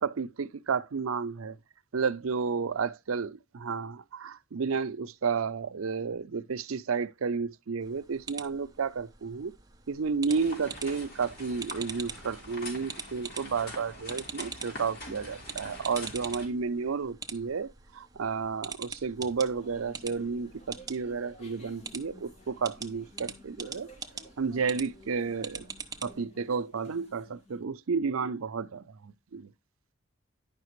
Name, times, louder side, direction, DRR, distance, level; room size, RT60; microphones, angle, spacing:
voice 1, 0.0-1.6 1.9-9.5 9.9-23.9 24.4-25.7 26.0-29.5, right 5 dB, 80° right, 0.5 m, -32 dB
sound 1, 7.8-26.3, right 5 dB, 15° right, 0.7 m, -44 dB
sound 2, 10.3-16.5, left 1 dB, 50° left, 3.3 m, -44 dB
sound 3, 19.2-27.6, left 1 dB, 30° left, 1.6 m, -54 dB
10.5 x 5.8 x 3.1 m
head